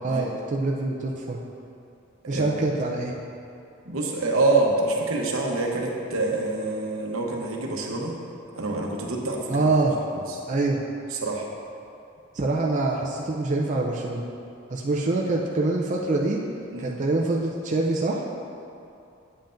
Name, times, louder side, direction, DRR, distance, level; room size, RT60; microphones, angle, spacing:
voice 1, 0.0-1.4 2.3-3.2 9.5-9.9 10.5-10.8 12.3-14.2 14.7-16.4 16.8-18.2, right 2 dB, 35° right, -2 dB, 0.5 m, -25 dB
voice 2, 3.8-8.1 8.6-9.5 10.1-10.4 11.1-11.5 16.7-17.0, right 2 dB, 80° right, 0 dB, 0.9 m, -26 dB
8.8 x 7.7 x 2.6 m, 2.7 s
head